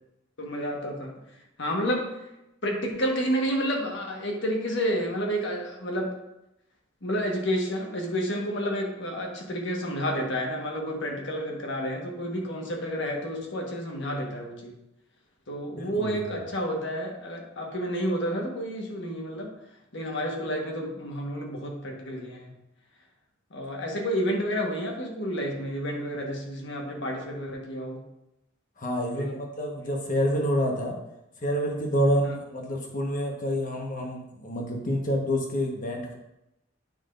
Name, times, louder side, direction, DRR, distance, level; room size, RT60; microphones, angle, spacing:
voice 1, 0.4-1.1 1.6-2.1 2.6-6.1 7.0-14.7 15.5-19.5 19.9-22.5 23.5-28.0 29.1-29.4 32.2-32.4, equal, 65° left, 1 dB, 1.4 m, -30 dB
voice 2, 15.7-16.2 28.8-31.0 31.4-36.1, equal, 45° left, 1 dB, 1.3 m, -28 dB
9.2 x 5.9 x 2.6 m, 0.88 s
head